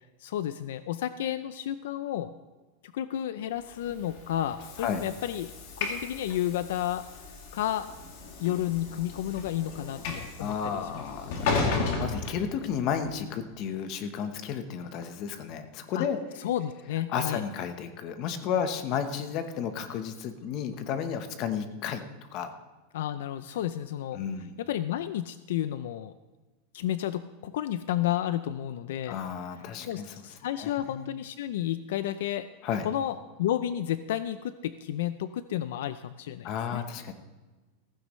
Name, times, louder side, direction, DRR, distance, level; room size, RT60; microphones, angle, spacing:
voice 1, 0.2-2.3 2.9-5.5 5.8-7.0 7.5-7.9 8.4-11.1 11.6-11.8 15.9-16.1 16.4-17.4 22.9-24.2 24.6-26.1 26.7-29.2 29.9-32.5 32.8-36.8, left 11 dB, 70° left, 13 dB, 0.4 m, -31 dB
Train / Sliding door, 3.7-13.0, left 4 dB, 50° left, 2.3 m, -35 dB
voice 2, 10.4-16.2 17.1-22.0 22.3-22.5 24.1-24.6 29.1-30.3 30.6-31.1 32.6-32.9 36.4-37.1, left 7 dB, 35° left, 8 dB, 1.0 m, -32 dB
15.5 x 15.0 x 3.1 m, 1.2 s
supercardioid pair, 175°, 0 cm